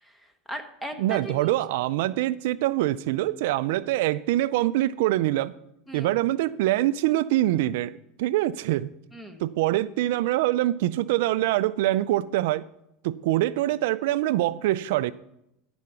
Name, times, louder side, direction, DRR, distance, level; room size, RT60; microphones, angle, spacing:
voice 1, 0.0-1.6 5.9-6.1 9.1-9.4, right 1 dB, 5° left, 1.3 m, -38 dB
voice 2, 1.0-5.5 5.9-7.9 8.2-8.9 9.4-12.7 13.0-15.1, right 15 dB, 75° right, 0.3 m, -24 dB
13.0 x 5.0 x 5.7 m
supercardioid pair, 135°, 0 cm